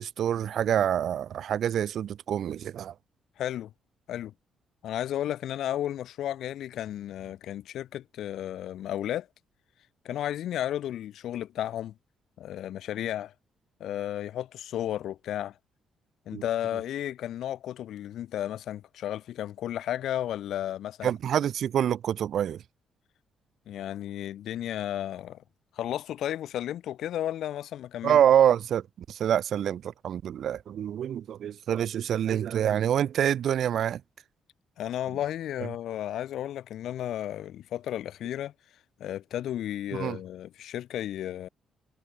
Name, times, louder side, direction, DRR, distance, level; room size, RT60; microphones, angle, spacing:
voice 1, 0.0-2.9 16.3-16.4 21.0-22.6 28.0-34.0 39.9-40.2, right 10 dB, 65° right, 0.6 m, -26 dB
voice 2, 3.4-3.7 4.1-4.3 4.8-9.3 10.0-11.9 12.4-13.3 13.8-15.6 16.3-21.1 23.7-25.4 25.8-28.2 34.8-38.5 39.0-41.5, left 11 dB, 75° left, 0.3 m, -33 dB
cardioid pair, 90°, 0 cm